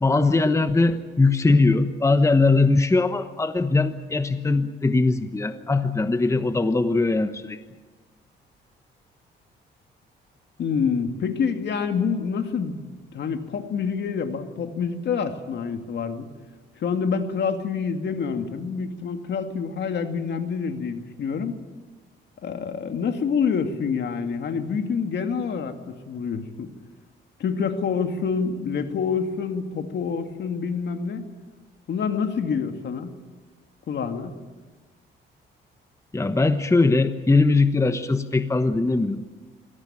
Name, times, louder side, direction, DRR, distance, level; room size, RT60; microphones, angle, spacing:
voice 1, 0.0-7.6 36.1-39.2, left 3 dB, 15° left, 10 dB, 1.1 m, -20 dB
voice 2, 10.6-12.8 13.1-16.3 16.8-21.6 22.4-26.7 27.4-31.3 31.9-33.2 33.9-34.3, left 6 dB, 60° left, 7 dB, 2.3 m, -27 dB
24.0 x 17.5 x 8.8 m, 1.3 s
cardioid pair, 90°, 20 cm